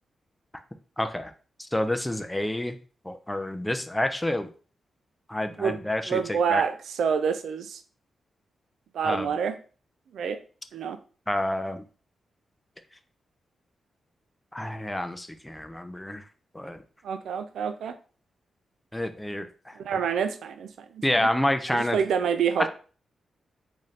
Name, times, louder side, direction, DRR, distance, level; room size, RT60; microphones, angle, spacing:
voice 1, 1.0-1.3 1.6-2.8 3.0-4.5 5.3-6.6 9.0-9.3 11.3-11.8 14.5-16.2 16.5-16.8 18.9-20.0 21.0-22.0 22.6-22.7, left 1 dB, 10° left, 8 dB, 0.4 m, -28 dB
voice 2, 6.1-7.8 8.9-9.6 10.1-10.4 10.7-11.0 17.0-17.9 19.8-21.3 21.7-22.7, right 7 dB, 85° right, 9 dB, 0.4 m, -27 dB
4.0 x 2.7 x 3.1 m, 0.38 s
cardioid pair, 100°, 0 cm